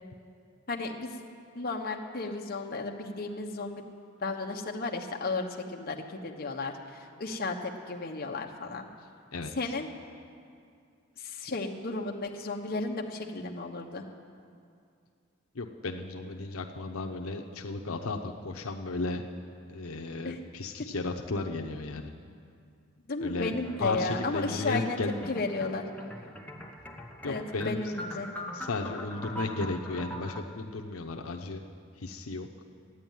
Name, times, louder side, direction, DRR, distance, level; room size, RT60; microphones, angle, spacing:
voice 1, 0.7-1.2 1.5-3.9 4.2-8.9 9.6-9.9 11.2-14.0 20.2-20.4 23.1-25.0 25.3-25.9 27.3-28.3, left 3 dB, 45° left, 1 dB, 1.1 m, -34 dB
voice 2, 9.3-9.7 15.5-19.2 19.7-22.1 23.2-25.3 27.2-27.8 28.5-31.6 32.0-32.5, left 3 dB, 85° left, 3 dB, 0.8 m, -34 dB
sound 1, 23.6-30.4, equal, 5° left, 0.8 m, -42 dB
13.5 x 9.3 x 9.2 m, 2.3 s
head